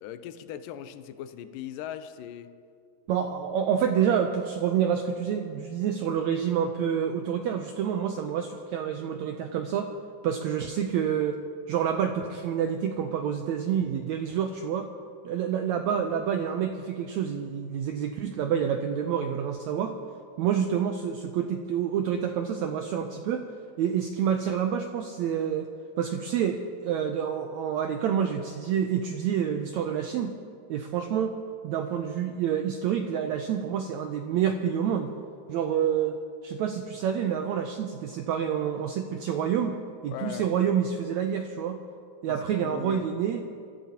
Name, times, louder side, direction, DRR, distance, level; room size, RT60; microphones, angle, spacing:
voice 1, 0.0-2.6 40.1-40.5 42.3-43.1, left 10 dB, 85° left, 11 dB, 2.3 m, -39 dB
voice 2, 3.1-9.9 10.2-11.4 11.7-14.9 15.2-20.0 20.4-23.4 23.8-25.7 26.0-30.4 30.7-31.4 31.6-35.1 35.5-41.8 42.2-43.4, right 8 dB, 90° right, 5 dB, 1.6 m, -28 dB
26.5 x 14.0 x 2.9 m, 2.4 s
omnidirectional pair, 3.9 m